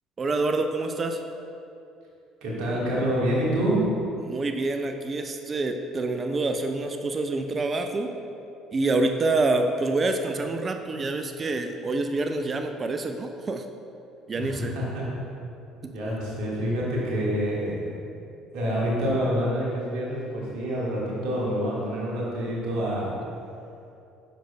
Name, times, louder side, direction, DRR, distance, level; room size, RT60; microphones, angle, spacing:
voice 1, 0.2-1.2 4.2-8.1 8.7-13.6 14.3-14.7, right 2 dB, 30° right, 6 dB, 0.4 m, -27 dB
voice 2, 2.4-3.8 14.4-15.1 15.9-17.9 18.5-23.1, equal, 60° right, -5 dB, 1.6 m, -27 dB
9.1 x 6.4 x 2.2 m, 2.7 s
figure-of-eight pair, 55°, 0 cm